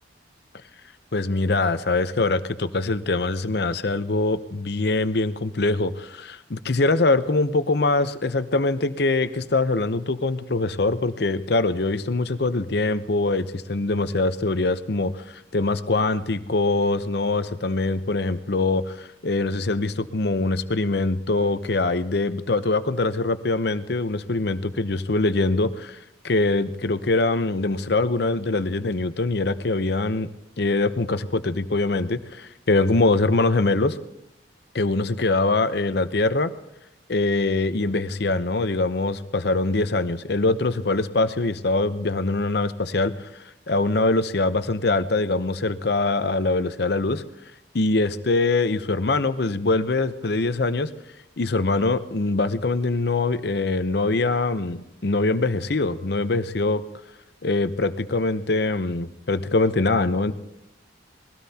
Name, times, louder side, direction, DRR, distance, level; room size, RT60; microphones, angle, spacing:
voice 1, 1.1-26.0 26.2-30.3 30.6-34.0 34.7-36.5 37.1-43.1 43.7-47.2 47.7-50.9 51.4-56.8 57.4-60.3, left 2 dB, 55° left, 12 dB, 0.7 m, -23 dB
21.5 x 16.5 x 2.8 m, 0.89 s
head